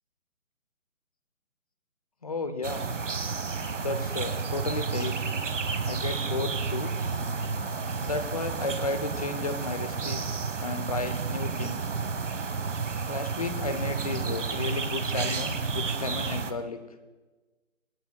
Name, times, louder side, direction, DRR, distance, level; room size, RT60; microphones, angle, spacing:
voice 1, 2.2-2.8 3.7-5.2 5.9-6.9 8.0-10.3 10.6-11.9 13.1-16.8, left 3 dB, 30° left, 9 dB, 0.6 m, -33 dB
sound 1, 2.6-16.5, right 5 dB, 60° right, 1.2 m, -31 dB
27.0 x 9.0 x 2.3 m, 1.3 s
figure-of-eight pair, 150°, 41 cm